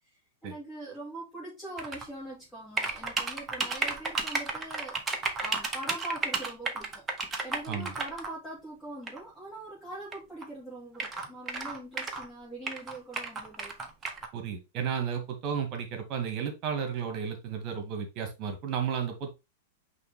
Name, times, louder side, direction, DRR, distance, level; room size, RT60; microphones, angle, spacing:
voice 1, 0.1-7.0 7.4-13.7, right 2 dB, 10° left, 2.5 m, -42 dB
sound 1, 1.8-2.1 2.8-8.3 9.1-9.2 10.1-10.2 10.4-10.5 10.9-12.3 12.7-14.3, right 4 dB, 15° right, 1.2 m, -33 dB
voice 2, 14.3-19.3, right 7 dB, 35° right, 1.9 m, -33 dB
9.0 x 3.2 x 3.6 m
figure-of-eight pair, 95°, 0 cm